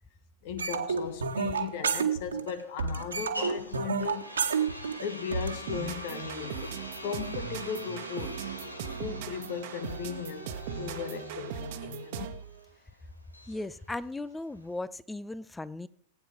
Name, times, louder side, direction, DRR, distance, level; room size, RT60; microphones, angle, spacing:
voice 1, 0.4-4.4 5.0-8.5 9.0-12.4 13.5-13.7, left 7 dB, 50° left, 1.5 m, -37 dB
sound 1, 0.6-2.5 2.8-5.6, right 6 dB, 70° right, 1.7 m, -30 dB
sound 2, 1.0-14.8, equal, 85° left, 1.9 m, -44 dB
sound 3, 5.7-12.5, right 8 dB, 50° right, 1.4 m, -39 dB
voice 2, 13.5-15.9, left 2 dB, 10° left, 0.7 m, -37 dB
19.0 x 9.5 x 5.1 m
figure-of-eight pair, 90°, 0 cm